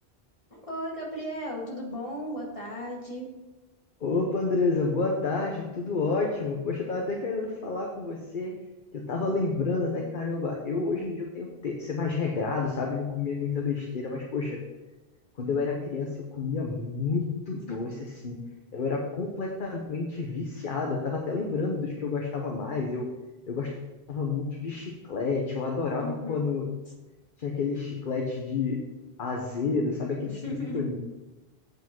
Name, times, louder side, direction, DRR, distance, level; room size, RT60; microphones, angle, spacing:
voice 1, 0.5-3.3 17.5-17.9 26.0-26.4 30.2-30.8, equal, 30° left, -3 dB, 2.1 m, -36 dB
voice 2, 4.0-8.6 8.9-14.6 15.4-17.9 18.2-18.4 18.7-23.1 23.5-23.8 24.1-26.7 27.4-28.8 29.2-31.0, left 4 dB, 55° left, 1 dB, 1.1 m, -29 dB
8.1 x 5.2 x 5.8 m, 1.1 s
omnidirectional pair, 1.0 m